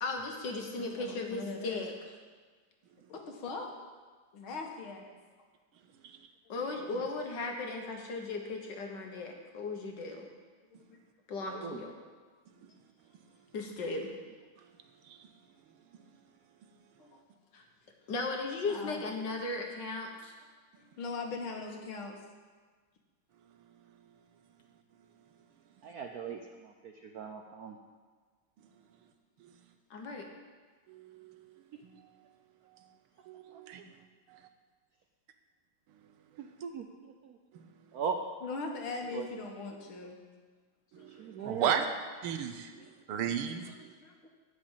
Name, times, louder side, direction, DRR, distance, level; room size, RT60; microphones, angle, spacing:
voice 1, 0.0-1.9 6.5-10.3 11.3-12.0 13.5-14.1 17.5-17.6 18.1-20.4 29.9-30.3, left 3 dB, 60° left, 2 dB, 1.8 m, -36 dB
voice 2, 0.8-1.8 3.1-3.7 4.3-5.1 10.8-11.0 11.3-11.4 17.0-17.2 18.6-19.1 20.8-22.2 38.4-40.2 41.0-41.5 42.4-42.5 42.8-42.9 43.3-43.4 44.0-44.3, left 3 dB, 75° left, 2 dB, 2.2 m, -41 dB
voice 3, 11.5-11.8 25.8-27.8 33.5-33.6 36.4-37.4 37.9-38.2 39.1-39.3 41.2-41.8, right 6 dB, 70° right, 3 dB, 0.9 m, -39 dB
voice 4, 30.9-31.5 31.8-31.9 33.3-33.8 34.3-34.4 37.5-37.7 40.9-41.9 42.2-43.9, right 8 dB, 90° right, 7 dB, 1.8 m, -35 dB
12.0 x 5.2 x 8.9 m, 1.4 s
omnidirectional pair, 2.3 m